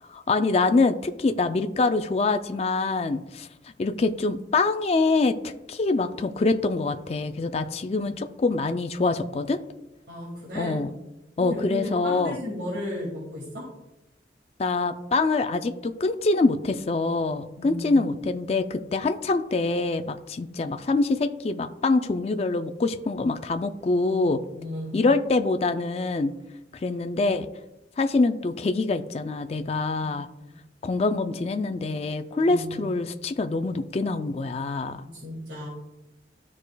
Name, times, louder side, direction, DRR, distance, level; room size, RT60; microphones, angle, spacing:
voice 1, 0.1-3.5 3.8-9.6 10.6-10.9 11.4-12.4 14.6-24.4 24.9-26.3 26.7-27.5 28.0-30.3 30.8-35.0, left 3 dB, 35° left, 9 dB, 0.3 m, -25 dB
voice 2, 10.1-10.8 11.4-13.7 17.6-18.0 24.5-25.0 30.0-30.5 32.4-32.9 35.0-35.7, left 1 dB, 75° right, -5 dB, 2.2 m, -35 dB
13.5 x 4.8 x 2.3 m, 0.94 s
head